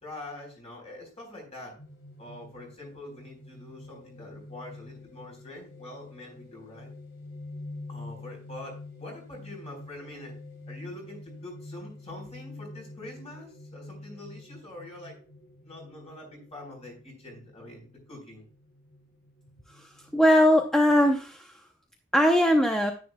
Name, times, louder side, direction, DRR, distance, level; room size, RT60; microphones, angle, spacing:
voice 1, 0.0-1.7 2.2-6.9 7.9-10.3 10.7-15.2 15.6-18.5, left 1 dB, 30° left, 1 dB, 4.2 m, -44 dB
sound 1, 1.8-21.0, left 2 dB, 60° left, 3.3 m, -46 dB
voice 2, 20.1-21.5 22.1-22.9, equal, 5° left, 2 dB, 0.6 m, -20 dB
10.0 x 10.0 x 2.3 m, 0.37 s
head